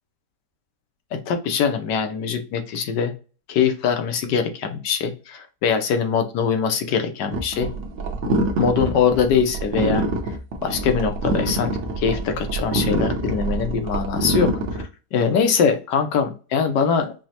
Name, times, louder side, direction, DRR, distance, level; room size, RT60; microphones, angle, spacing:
voice 1, 1.1-3.1 3.5-7.7 8.6-10.1 10.6-17.1, left 6 dB, 80° left, 6 dB, 1.4 m, -22 dB
sound 1, 7.3-14.8, right 2 dB, 55° right, 0.9 m, -25 dB
5.1 x 2.0 x 2.8 m, 0.34 s
omnidirectional pair, 1.8 m